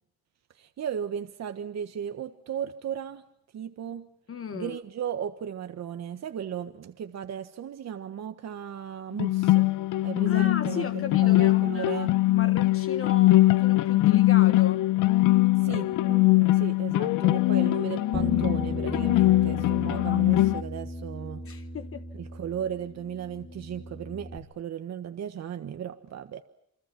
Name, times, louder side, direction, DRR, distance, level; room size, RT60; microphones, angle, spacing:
voice 1, 0.5-3.2 3.5-4.1 4.5-9.7 10.0-12.1 15.6-21.4 22.1-26.4, right 9 dB, 60° right, 1.5 m, -36 dB
voice 2, 4.3-4.8 10.3-14.8 20.0-20.2 21.4-22.0, left 7 dB, 45° left, 1.3 m, -36 dB
sound 1, 9.2-20.6, left 17 dB, 85° left, 0.8 m, -22 dB
Bass guitar, 18.1-24.4, left 2 dB, 30° left, 4.1 m, -35 dB
28.5 x 24.5 x 6.0 m
cardioid pair, 90°, 30 cm